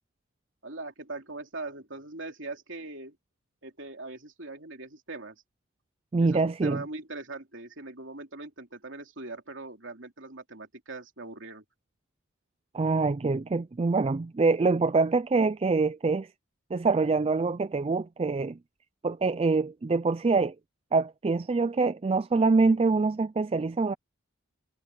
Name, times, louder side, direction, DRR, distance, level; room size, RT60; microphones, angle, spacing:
voice 1, 0.6-3.2 3.6-5.4 6.2-11.6, right 2 dB, 60° right, 3.3 m, -41 dB
voice 2, 6.1-6.8 12.7-16.3 16.7-18.6 19.0-20.6 20.9-23.9, right 3 dB, 25° right, 0.3 m, -25 dB
head